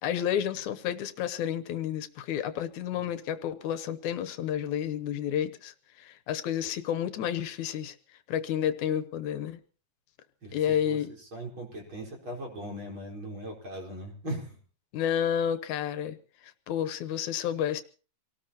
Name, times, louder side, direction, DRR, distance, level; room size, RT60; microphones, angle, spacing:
voice 1, 0.0-8.0 8.3-9.6 10.5-11.1 14.9-16.2 16.7-17.8, left 9 dB, 80° left, 11 dB, 2.4 m, -30 dB
voice 2, 10.4-14.6, right 1 dB, 40° right, 0 dB, 5.2 m, -39 dB
26.5 x 18.5 x 2.9 m, 0.39 s
omnidirectional pair, 3.4 m